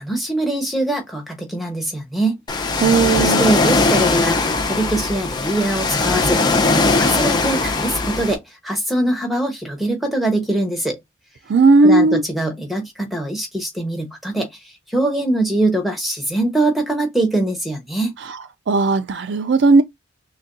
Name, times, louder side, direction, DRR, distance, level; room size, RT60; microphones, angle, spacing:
voice 1, 0.0-2.4 3.2-6.6 7.0-11.0 11.8-18.1, right 1 dB, ahead, 1.1 m, -22 dB
Ocean, 2.5-8.3, left 3 dB, 20° left, 0.6 m, -19 dB
voice 2, 2.8-3.5 11.5-12.2 18.3-18.4 18.7-19.8, right 3 dB, 60° right, 0.4 m, -15 dB
6.0 x 2.2 x 2.6 m
head